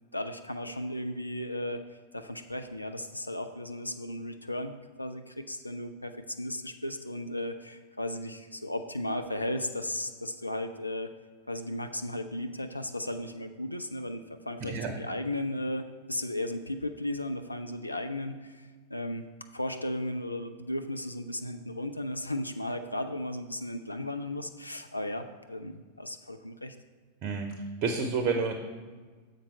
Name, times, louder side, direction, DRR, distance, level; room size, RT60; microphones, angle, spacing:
voice 1, 0.1-1.8 2.1-11.1 11.5-19.3 19.5-26.8, left 1 dB, 85° left, 7 dB, 0.3 m, -35 dB
voice 2, 14.6-14.9 27.2-27.5 27.8-28.5, right 5 dB, 40° right, 5 dB, 0.7 m, -29 dB
7.3 x 5.2 x 4.4 m, 1.5 s
figure-of-eight pair, 90°, 0 cm